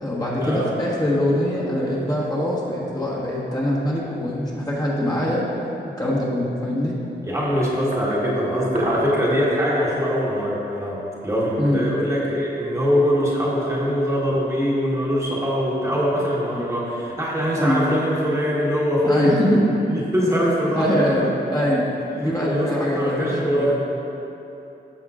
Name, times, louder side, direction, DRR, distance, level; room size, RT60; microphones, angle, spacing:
voice 1, 0.0-5.4 6.0-6.9 11.6-11.8 16.5-16.6 17.6-17.8 19.0-19.6 20.7-23.8, left 1 dB, 20° left, -6 dB, 1.4 m, -23 dB
sound 1, 3.9-4.1 7.2-8.2 8.5-9.5, right 2 dB, 50° right, 0.9 m, -32 dB
voice 2, 7.2-19.3 19.9-21.1 22.2-23.8, equal, 15° right, -6 dB, 1.4 m, -22 dB
14.0 x 5.6 x 2.5 m, 3.0 s
wide cardioid pair, 110°, 18 cm